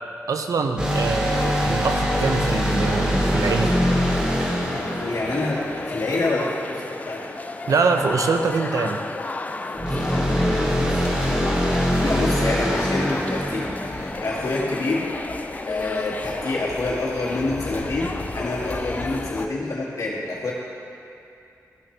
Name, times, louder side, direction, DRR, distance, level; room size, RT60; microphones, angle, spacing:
voice 1, 0.3-3.7 7.7-9.0, right 4 dB, 70° right, 5 dB, 0.6 m, -23 dB
sound 1, 0.8-6.3 9.8-14.5, equal, 15° right, 1.1 m, -23 dB
sound 2, 1.2-19.5, left 3 dB, 25° left, 0.3 m, -33 dB
voice 2, 4.8-7.2 9.7-15.1 15.7-20.5, left 2 dB, 75° left, -6 dB, 2.0 m, -27 dB
sound 3, 8.9-19.4, left 1 dB, 45° left, 1.4 m, -42 dB
15.0 x 6.0 x 3.3 m, 2.6 s
wide cardioid pair, 140°, 6 cm